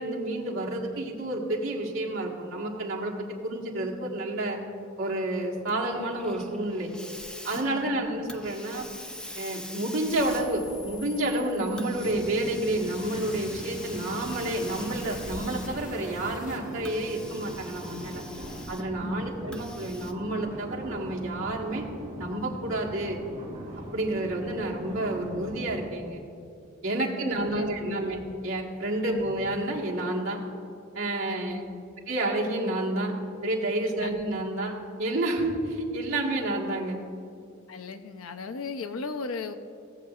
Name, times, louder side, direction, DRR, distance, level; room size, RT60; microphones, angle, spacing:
voice 1, 0.0-4.6 5.0-6.9 7.4-8.9 9.3-18.2 18.7-21.8 22.2-23.2 23.9-26.2 26.8-30.4 30.9-31.6 32.1-33.1 33.4-37.0, right 1 dB, 65° right, -3 dB, 1.5 m, -30 dB
Hiss, 5.7-16.0 16.7-19.0 19.5-20.1, equal, 5° left, 0.4 m, -43 dB
voice 2, 7.7-8.1 19.0-19.4 26.9-28.1 28.9-29.2 31.3-31.9 34.0-34.1 37.7-39.5, left 4 dB, 75° left, 8 dB, 0.6 m, -38 dB
sound 1, 10.1-12.1 12.8-18.6, left 3 dB, 40° left, 0.9 m, -47 dB
sound 2, 11.9-25.9, equal, 35° right, 2.3 m, -41 dB
17.0 x 7.8 x 2.4 m, 2.6 s
head